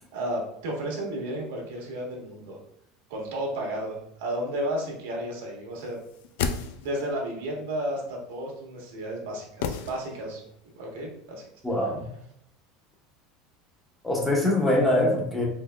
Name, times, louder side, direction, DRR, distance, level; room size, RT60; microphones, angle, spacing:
voice 1, 0.1-2.6 3.1-6.0 6.8-10.4 10.8-11.5, right 1 dB, 85° right, -1 dB, 1.1 m, -32 dB
sound 1, 6.0-7.2 9.6-10.5 10.8-10.9, left 6 dB, 75° left, 0.3 m, -32 dB
voice 2, 11.6-12.0 14.0-15.4, left 1 dB, 5° left, -2 dB, 0.6 m, -23 dB
3.8 x 2.9 x 2.3 m, 0.73 s
cardioid pair, 170°, 0 cm